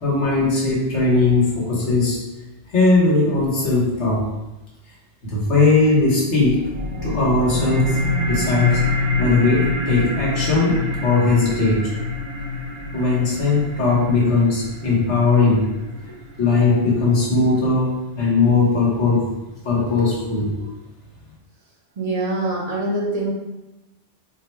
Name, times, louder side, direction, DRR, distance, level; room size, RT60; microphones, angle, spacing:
voice 1, 0.0-2.2 2.7-4.2 5.2-6.6 7.0-8.0 8.3-8.8 9.1-11.9 12.9-15.6 16.4-19.3 19.6-20.6, left 3 dB, 85° left, -4 dB, 1.4 m, -19 dB
sound 1, 6.4-17.4, left 2 dB, 70° right, 0.9 m, -26 dB
voice 2, 22.0-23.3, right 2 dB, 40° right, -3 dB, 0.8 m, -24 dB
3.8 x 2.1 x 4.3 m, 1.0 s
omnidirectional pair, 1.2 m